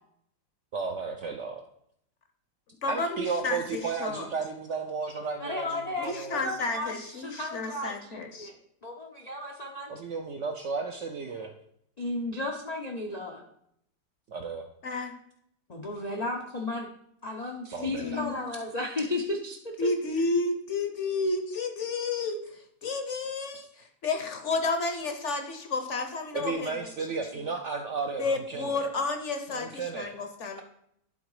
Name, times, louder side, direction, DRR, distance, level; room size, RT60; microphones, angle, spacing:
voice 1, 0.7-1.6 2.9-6.4 9.9-11.5 14.3-14.7 17.7-18.2 23.5-23.6 26.3-28.8 29.5-30.1, right 5 dB, 75° right, 4 dB, 0.6 m, -34 dB
voice 2, 2.8-4.3 6.0-8.5 14.8-15.1 17.8-18.5 19.8-26.8 28.2-30.6, left 3 dB, 55° left, 6 dB, 0.8 m, -31 dB
voice 3, 5.4-9.9 12.0-13.5 15.7-16.9 17.2-19.9, left 2 dB, 85° left, 1 dB, 0.3 m, -34 dB
11.0 x 3.9 x 4.8 m, 0.73 s
omnidirectional pair, 1.9 m